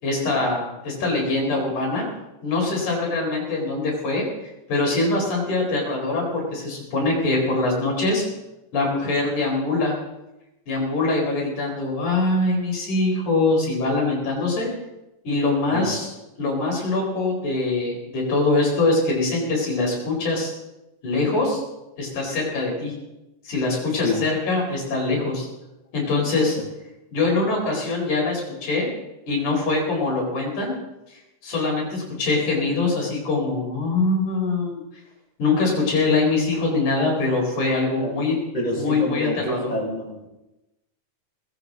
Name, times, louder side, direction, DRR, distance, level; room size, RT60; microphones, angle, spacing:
voice 1, 0.0-2.0 2.4-4.2 4.7-8.2 8.7-10.0 10.7-14.7 15.2-16.1 16.4-20.5 21.0-21.6 22.0-22.9 23.4-25.5 25.9-26.6 27.1-28.9 29.3-30.7 31.4-34.7 35.4-38.4 38.7-39.7, left 3 dB, 85° left, -1 dB, 5.9 m, -23 dB
voice 2, 38.5-40.3, left 1 dB, 15° left, -4 dB, 5.7 m, -27 dB
20.0 x 16.5 x 4.1 m, 0.98 s
omnidirectional pair, 3.4 m